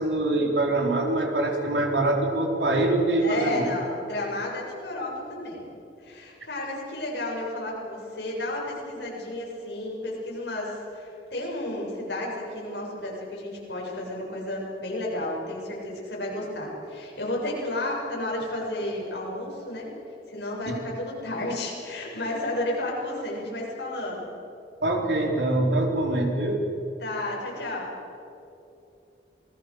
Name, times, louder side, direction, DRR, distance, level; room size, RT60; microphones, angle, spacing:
voice 1, 0.0-3.6 20.7-20.8 24.8-26.6, right 2 dB, 75° right, 1 dB, 4.1 m, -24 dB
voice 2, 3.2-5.7 6.0-19.9 20.3-24.3 27.0-27.9, left 1 dB, 70° left, -3 dB, 7.3 m, -32 dB
27.0 x 20.5 x 6.5 m, 2.8 s
head